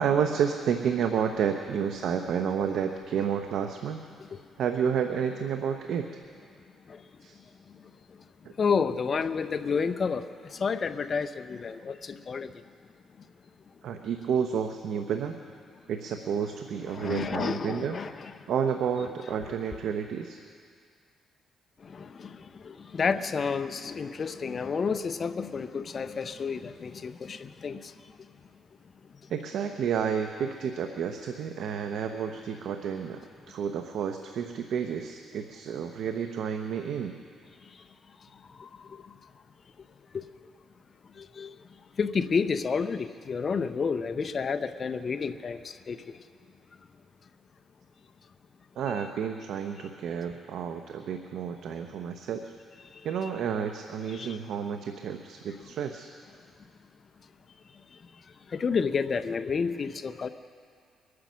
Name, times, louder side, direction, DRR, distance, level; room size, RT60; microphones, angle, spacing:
voice 1, 0.0-4.1 4.6-6.1 7.2-7.4 8.4-8.5 13.8-15.4 15.9-18.0 18.5-20.4 29.3-33.2 33.5-37.2 48.8-52.5 53.0-56.1, right 7 dB, 75° right, 0.8 m, -30 dB
voice 2, 8.6-12.6 16.9-18.1 21.8-27.9 37.7-37.8 38.6-39.1 40.1-40.3 41.2-41.5 42.0-46.2 54.1-54.4 58.5-60.3, left 5 dB, 45° left, 0.7 m, -30 dB
23.0 x 9.6 x 6.2 m
cardioid pair, 90°, 0 cm